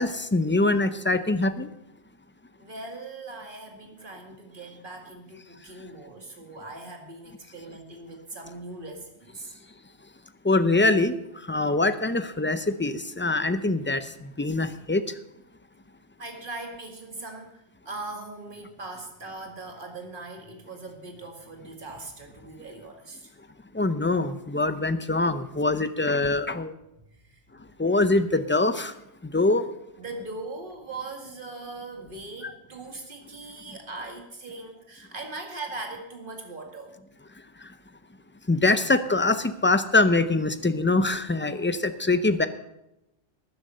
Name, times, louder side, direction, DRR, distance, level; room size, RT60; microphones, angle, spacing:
voice 1, 0.0-1.7 10.4-11.1 11.5-15.0 23.7-26.7 27.8-28.9 29.2-29.7 32.4-32.5 38.5-42.5, left 2 dB, 15° left, 11 dB, 0.4 m, -23 dB
voice 2, 2.6-9.5 16.2-23.3 27.1-27.4 30.0-36.9, right 2 dB, 50° right, 3 dB, 2.2 m, -40 dB
13.0 x 10.0 x 5.5 m, 0.87 s
omnidirectional pair, 1.1 m